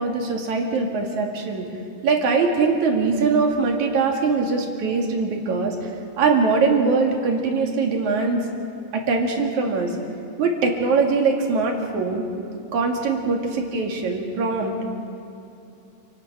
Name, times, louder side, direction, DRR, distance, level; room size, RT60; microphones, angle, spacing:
voice 1, 0.0-1.7 2.0-5.8 6.2-8.4 8.9-10.0 10.4-12.2 12.7-14.8, right 4 dB, 65° right, 1 dB, 3.6 m, -22 dB
28.5 x 18.0 x 6.2 m, 2.7 s
omnidirectional pair, 3.6 m